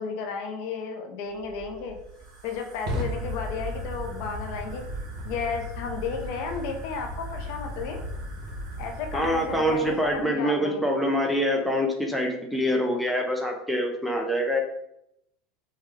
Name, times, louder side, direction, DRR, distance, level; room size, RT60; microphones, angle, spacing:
voice 1, 0.0-2.0 2.4-4.8 5.2-8.0 8.8-10.8, left 5 dB, 65° left, 3 dB, 0.6 m, -33 dB
Fire, 1.3-10.3, equal, 60° right, 1.1 m, -36 dB
voice 2, 9.1-14.6, equal, ahead, 1 dB, 0.6 m, -25 dB
3.3 x 2.2 x 3.3 m, 0.80 s
supercardioid pair, 110°, 0 cm